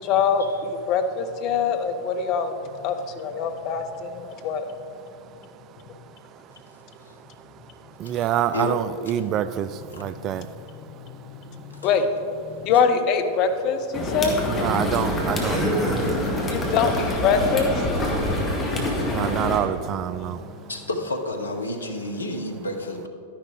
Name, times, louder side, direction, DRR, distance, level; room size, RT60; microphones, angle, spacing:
voice 1, 0.0-2.5 2.8-4.7 11.0-11.1 11.8-14.4 16.4-19.2 20.3-20.7, left 6 dB, 40° left, 0.9 m, -24 dB
voice 2, 4.0-4.7 4.9-11.3 12.5-12.7 14.4-16.7 18.1-20.7, right 10 dB, 35° right, 0.3 m, -30 dB
sound 1, 13.9-19.6, left 1 dB, 15° left, 1.6 m, -25 dB
voice 3, 20.7-23.1, left 1 dB, 75° left, 1.0 m, -29 dB
11.5 x 10.5 x 3.4 m
figure-of-eight pair, 90°, 0 cm